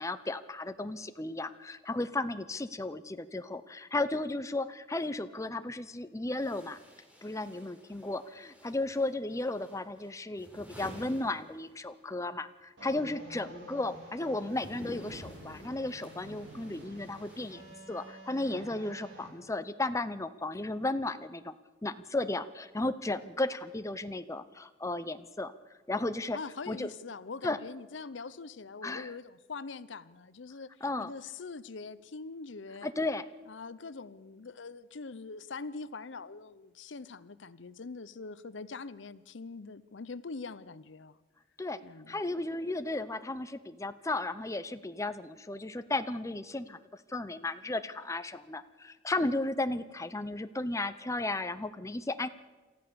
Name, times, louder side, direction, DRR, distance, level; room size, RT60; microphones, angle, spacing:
voice 1, 0.0-6.8 7.2-21.5 21.8-25.5 25.9-26.4 26.7-26.9 27.4-27.6 28.8-29.1 30.8-31.1 32.8-33.2 41.6-41.8 42.1-46.8 47.1-52.3, left 2 dB, 15° left, 11 dB, 0.7 m, -34 dB
sound 1, 6.3-12.1 12.4-18.2, equal, 5° right, 3.9 m, -52 dB
sound 2, 12.8-19.3, right 1 dB, 70° right, 7.3 m, -50 dB
voice 2, 26.3-30.7 31.0-32.9 33.5-41.2 41.8-42.2, left 4 dB, 70° left, 16 dB, 0.7 m, -43 dB
27.5 x 14.0 x 6.9 m, 1.2 s
head